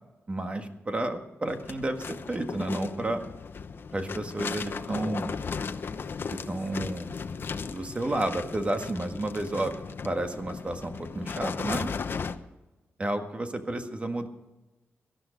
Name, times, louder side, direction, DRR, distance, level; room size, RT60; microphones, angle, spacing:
voice 1, 0.3-3.2 3.9-5.3 6.3-7.2 7.7-11.9 13.0-14.3, right 1 dB, 25° right, 6 dB, 1.7 m, -31 dB
sound 1, 1.5-12.4, left 5 dB, 55° left, 0.9 m, -36 dB
18.0 x 12.5 x 5.2 m, 1.1 s
wide cardioid pair, 110°, 5 cm